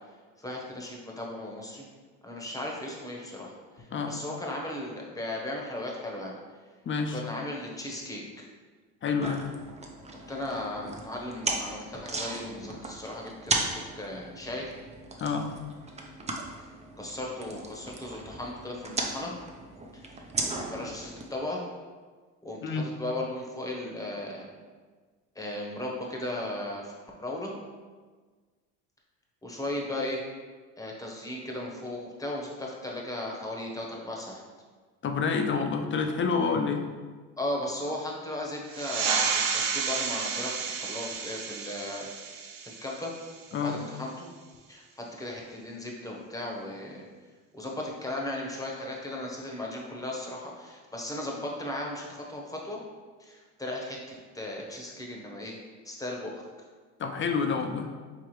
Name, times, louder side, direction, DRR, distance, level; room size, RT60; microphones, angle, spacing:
voice 1, 0.4-1.8 2.2-6.3 7.1-8.4 10.1-14.7 16.5-16.7 17.0-19.3 19.9-20.2 20.7-21.6 22.4-24.4 25.3-27.5 29.4-30.2 30.8-34.4 37.4-42.1 42.6-43.1 43.6-44.3 44.7-44.8 45.2-47.0 47.5-52.8 53.2-55.5 55.8-56.3, left 1 dB, 10° left, -1 dB, 1.0 m, -36 dB
voice 2, 6.9-7.2 9.0-9.5 15.2-15.5 22.6-22.9 35.0-36.9 43.5-43.8 57.0-57.9, left 5 dB, 35° left, 4 dB, 0.5 m, -28 dB
sound 1, 9.2-21.2, right 2 dB, 20° right, 0.6 m, -36 dB
sound 2, 38.7-43.8, right 6 dB, 80° right, 0.6 m, -31 dB
4.9 x 3.4 x 3.1 m, 1.4 s
supercardioid pair, 85°, 36 cm